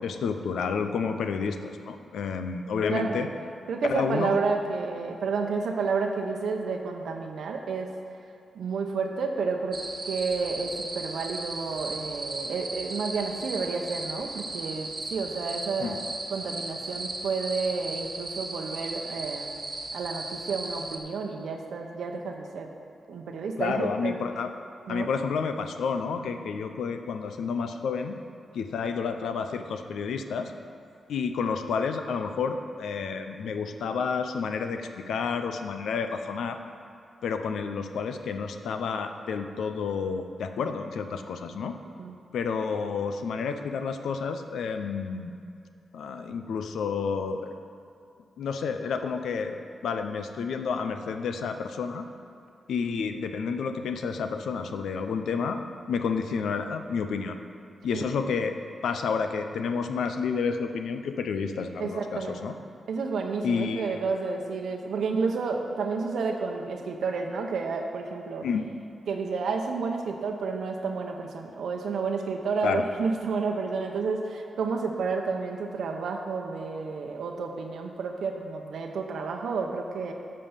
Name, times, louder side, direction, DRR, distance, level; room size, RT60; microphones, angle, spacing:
voice 1, 0.0-3.3 3.8-4.4 15.8-16.0 23.6-24.5 24.9-28.2 28.5-30.5 31.1-36.6 37.2-41.8 42.3-45.3 45.9-47.5 48.4-52.1 52.7-57.4 57.8-58.6 58.8-62.5 63.4-64.0 68.4-68.7 72.6-72.8, left 5 dB, 85° left, 7 dB, 0.6 m, -30 dB
voice 2, 2.9-3.2 3.7-7.9 8.5-16.0 16.3-19.6 19.9-22.7 23.1-24.2 24.9-25.1 42.0-42.1 57.9-58.0 61.8-62.4 62.9-68.5 69.1-80.1, right 4 dB, 80° right, 2 dB, 0.8 m, -30 dB
sound 1, 9.7-21.0, right 2 dB, 35° right, 1.4 m, -36 dB
9.5 x 5.5 x 7.1 m, 2.5 s
cardioid pair, 60°, 0 cm